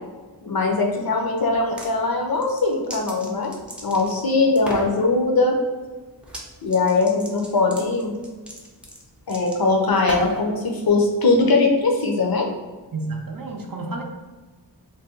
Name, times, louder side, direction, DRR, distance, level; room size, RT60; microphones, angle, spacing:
voice 1, 0.4-3.5 3.8-5.5 6.6-8.1 9.3-12.5, left 3 dB, 55° left, 1 dB, 0.6 m, -21 dB
sound 1, 1.5-1.9 2.3-4.2 4.6-4.9 6.2-6.5 6.7-10.5, equal, 5° right, 0.5 m, -35 dB
voice 2, 12.9-14.0, right 3 dB, 50° right, 2 dB, 0.5 m, -30 dB
2.7 x 2.2 x 3.6 m, 1.3 s
wide cardioid pair, 65°, 43 cm